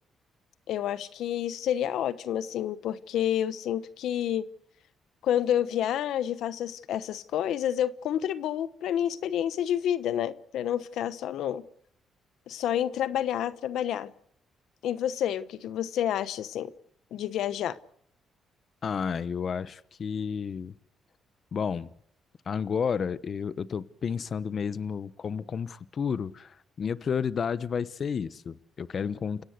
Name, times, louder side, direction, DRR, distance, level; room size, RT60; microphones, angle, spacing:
voice 1, 0.7-4.5 5.2-11.6 12.5-14.1 14.8-16.7 17.1-17.8, left 10 dB, 80° left, 1.0 m, -29 dB
voice 2, 18.8-20.8 21.5-21.9 22.5-29.4, left 6 dB, 50° left, 0.9 m, -31 dB
30.0 x 17.0 x 8.2 m
cardioid pair, 90°, 0 cm